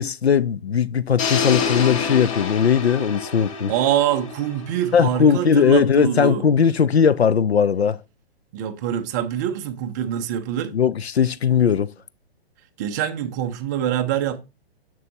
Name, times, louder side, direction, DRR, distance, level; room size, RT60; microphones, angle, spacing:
voice 1, 0.0-3.7 4.9-8.0 10.7-11.9, left 7 dB, 80° left, 0.5 m, -19 dB
sound 1, 1.2-5.2, left 6 dB, 30° left, 0.9 m, -27 dB
voice 2, 3.7-6.4 8.5-10.8 12.8-14.4, right 11 dB, 20° right, 0.4 m, -25 dB
6.6 x 6.2 x 2.8 m
figure-of-eight pair, 120°, 31 cm